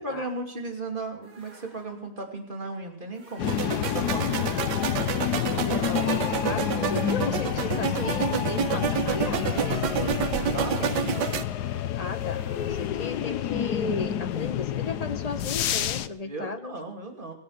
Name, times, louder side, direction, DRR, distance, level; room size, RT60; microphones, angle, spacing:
voice 1, 0.0-4.5 10.5-11.3 16.2-17.3, right 2 dB, 30° right, 4 dB, 3.0 m, -36 dB
sound 1, 1.2-2.3 3.1-4.2 4.9-13.6, right 2 dB, 55° right, 3.0 m, -54 dB
sound 2, 3.4-16.1, left 10 dB, 75° left, 1.4 m, -28 dB
sound 3, 3.4-11.4, right 8 dB, 85° right, 1.5 m, -29 dB
voice 2, 5.6-10.2 12.0-12.4 12.7-16.8, left 4 dB, 25° left, 10 dB, 1.1 m, -35 dB
25.0 x 8.7 x 6.6 m, 0.68 s
omnidirectional pair, 1.8 m